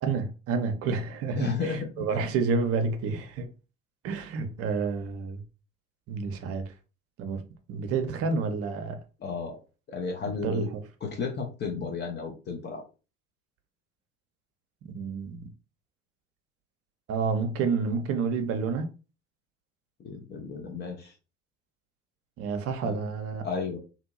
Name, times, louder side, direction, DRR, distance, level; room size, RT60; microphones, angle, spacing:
voice 1, 0.0-3.5 4.0-5.4 6.1-6.7 7.2-7.4 7.7-9.0 10.4-10.6 14.8-15.5 17.1-18.9 22.4-23.5, right 5 dB, 40° right, 0.7 m, -29 dB
voice 2, 1.3-2.3 9.2-9.6 9.9-10.7 11.0-12.8 20.0-21.1 22.8-23.0 23.4-23.8, left 4 dB, 30° left, 0.7 m, -33 dB
2.7 x 2.7 x 2.5 m
figure-of-eight pair, 65°, 38 cm